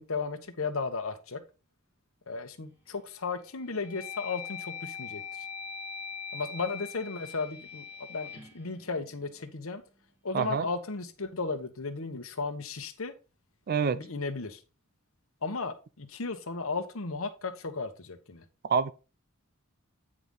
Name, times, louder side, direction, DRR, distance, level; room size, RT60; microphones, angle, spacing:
voice 1, 0.0-1.4 2.3-5.2 6.3-9.8 10.2-13.1 13.9-14.6 15.4-18.4, left 4 dB, 80° left, 1.1 m, -35 dB
sound 1, 2.6-3.1 3.6-9.7, left 7 dB, 10° right, 1.7 m, -42 dB
voice 2, 10.3-10.6 13.7-14.0 18.6-18.9, right 6 dB, 45° right, 0.4 m, -26 dB
8.9 x 5.0 x 3.9 m
head